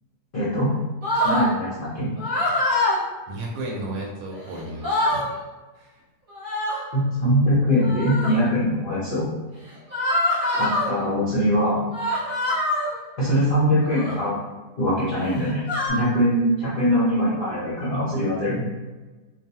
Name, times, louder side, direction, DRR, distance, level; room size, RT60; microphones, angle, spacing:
voice 1, 0.3-0.7 1.2-2.1 6.9-9.3 10.5-11.8 13.2-14.3 14.8-15.6 15.9-18.6, equal, 50° left, -10 dB, 0.6 m, -22 dB
sound 1, 1.0-1.5 2.2-3.0 4.3-4.4 4.7-5.3 6.3-6.9 7.8-8.4 9.9-10.9 11.9-12.9 13.8-14.2 15.1-15.9, left 1 dB, 40° right, 0.9 m, -24 dB
voice 2, 3.3-5.3 5.7-6.0, right 1 dB, 75° right, -1 dB, 1.1 m, -33 dB
2.5 x 2.3 x 2.7 m, 1.2 s
omnidirectional pair, 1.8 m